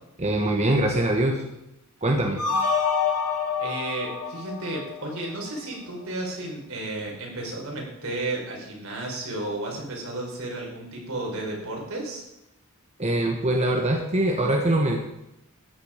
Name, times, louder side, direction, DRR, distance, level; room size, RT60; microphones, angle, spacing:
voice 1, 0.2-1.4 2.0-2.4 13.0-15.0, right 1 dB, 30° right, 2 dB, 1.3 m, -23 dB
sound 1, 2.4-5.5, left 5 dB, 85° left, 2.0 m, -27 dB
voice 2, 3.6-12.2, right 2 dB, 70° right, -1 dB, 4.7 m, -33 dB
13.5 x 10.5 x 5.1 m, 0.88 s
head